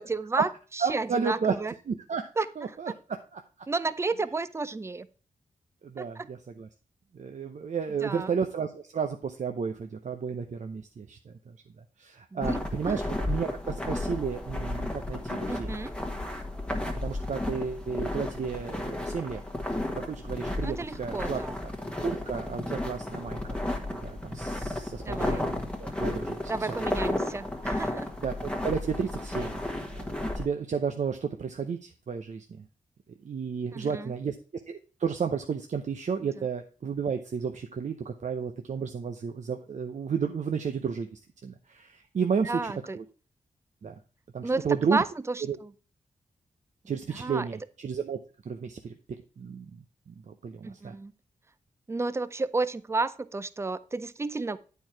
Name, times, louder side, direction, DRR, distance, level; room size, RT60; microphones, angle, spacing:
voice 1, 0.0-1.7 2.4-2.5 2.9-3.0 3.7-5.1 6.0-6.3 8.0-8.3 12.3-12.4 12.8-13.0 15.5-15.9 20.6-21.6 25.0-25.5 26.5-28.1 33.7-34.1 36.2-36.5 42.4-43.0 44.4-45.7 47.1-47.5 50.6-51.1 51.9-54.6, right 3 dB, 20° right, 15 dB, 0.5 m, -32 dB
voice 2, 0.8-1.5 1.9-2.3 2.6-3.4 5.8-6.7 7.1-11.3 12.0-15.7 17.0-19.4 19.9-21.4 22.0-23.4 23.9-26.4 26.7-26.8 28.2-32.5 33.2-34.3 34.7-41.1 41.4-43.0 43.8-43.9 44.3-45.0 45.5-45.6 46.9-48.2 48.5-48.9 49.4-51.0, right 6 dB, 60° right, 5 dB, 0.7 m, -32 dB
sound 1, 12.4-30.4, left 1 dB, 10° left, 1.4 m, -33 dB
8.6 x 4.6 x 4.5 m, 0.38 s
cardioid pair, 60°, 14 cm